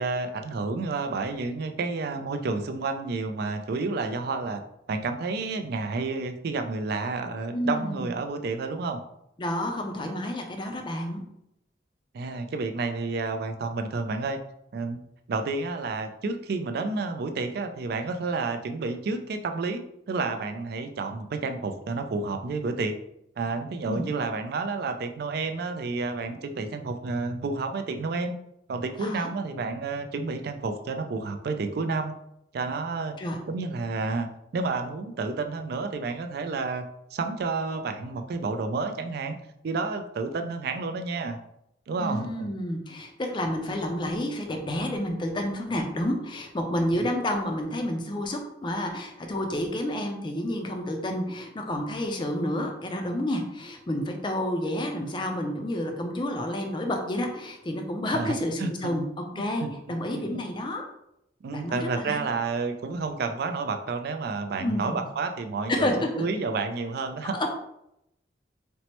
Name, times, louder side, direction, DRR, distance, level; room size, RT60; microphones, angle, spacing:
voice 1, 0.0-4.6 4.9-9.0 12.1-14.4 14.7-15.0 15.3-19.8 20.1-23.0 23.4-28.3 28.7-32.1 32.5-33.2 33.5-39.4 39.6-41.4 41.9-42.5 46.9-47.1 58.1-58.9 59.3-59.7 60.1-60.3 61.4-65.9 66.2-67.4, right 3 dB, 55° right, 7 dB, 0.3 m, -30 dB
voice 2, 7.5-8.1 9.4-11.2 23.9-24.1 29.0-29.3 33.2-33.4 42.0-60.8 61.5-62.2 64.6-64.9 65.7-66.2 67.3-67.5, left 1 dB, 25° left, 3 dB, 0.4 m, -30 dB
4.3 x 2.0 x 2.9 m, 0.80 s
head